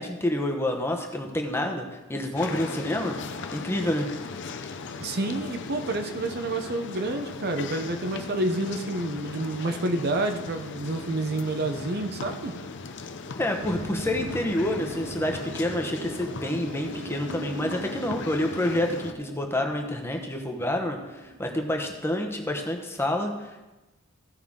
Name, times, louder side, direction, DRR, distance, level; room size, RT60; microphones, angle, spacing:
voice 1, 0.0-3.2 3.5-4.1 13.4-23.6, left 1 dB, 10° left, 3 dB, 1.0 m, -28 dB
sound 1, 2.4-19.1, left 4 dB, 60° left, 0.6 m, -38 dB
voice 2, 5.0-12.6, right 2 dB, 50° right, 6 dB, 0.7 m, -29 dB
sound 2, 13.6-22.5, right 1 dB, 70° right, 1.2 m, -41 dB
15.5 x 5.6 x 3.7 m, 1.1 s
head